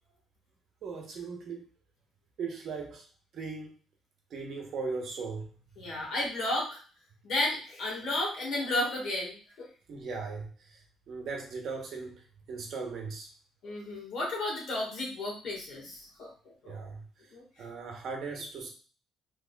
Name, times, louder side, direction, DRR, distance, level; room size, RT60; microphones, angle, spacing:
voice 1, 0.8-1.6 2.4-3.1 3.3-3.7 4.3-5.5 9.9-13.3 16.6-17.3 17.6-18.7, right 4 dB, 50° right, 2 dB, 0.9 m, -38 dB
voice 2, 5.8-6.8 7.2-9.7 13.6-16.3 16.6-16.8 17.3-17.4, left 2 dB, 60° left, -2 dB, 1.6 m, -33 dB
4.1 x 3.0 x 2.3 m, 0.38 s
cardioid pair, 150°, 0 cm